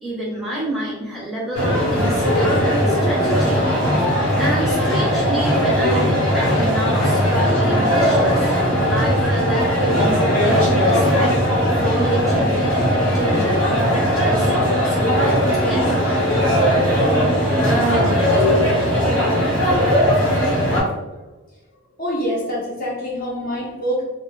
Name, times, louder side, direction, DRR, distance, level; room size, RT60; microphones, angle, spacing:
voice 1, 0.0-8.5 8.9-11.4 11.7-16.0 16.7-18.0, equal, ahead, -6 dB, 0.7 m, -27 dB
sound 1, 1.5-20.8, equal, 80° left, 1.2 m, -18 dB
sound 2, 2.2-17.3, left 1 dB, 30° right, 0.4 m, -30 dB
voice 2, 22.0-24.0, equal, 45° left, -5 dB, 0.8 m, -26 dB
2.3 x 2.2 x 3.0 m, 1.1 s
head